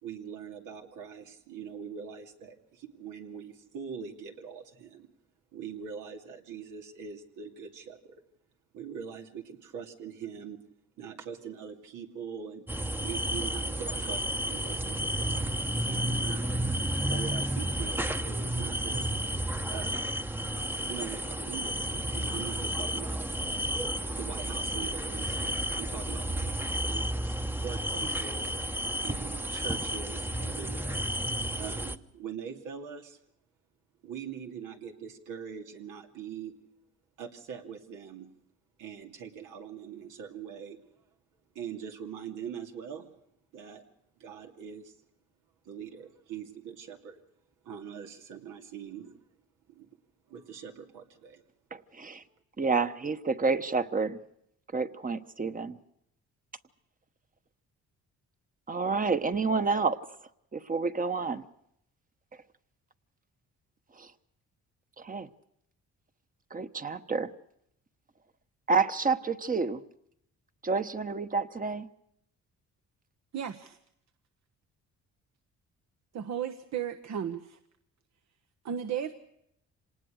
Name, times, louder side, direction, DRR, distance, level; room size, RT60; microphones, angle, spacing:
voice 1, 0.0-5.1 5.5-8.2 8.7-10.6 11.0-12.7 13.0-16.6 17.1-19.2 19.7-20.2 20.9-23.3 24.1-28.5 29.0-31.1 31.5-33.2 34.0-36.5 37.2-38.3 38.8-40.8 41.5-43.1 43.5-43.8 44.2-44.9 45.6-47.2 47.6-49.2 49.7-49.9 50.3-51.4, right 7 dB, 90° right, 3 dB, 2.7 m, -42 dB
sound 1, 12.7-32.0, right 1 dB, 5° right, 0.9 m, -32 dB
voice 2, 51.7-52.2 52.6-54.2 54.7-55.8 58.7-60.0 60.5-61.4 64.0-64.1 65.0-65.3 66.5-67.3 68.7-69.8 70.6-71.9, right 4 dB, 25° right, 10 dB, 1.1 m, -29 dB
voice 3, 73.3-73.8 76.1-77.6 78.6-79.2, right 8 dB, 65° right, 8 dB, 1.2 m, -34 dB
26.0 x 19.5 x 6.4 m, 0.76 s
cardioid pair, 90°, 30 cm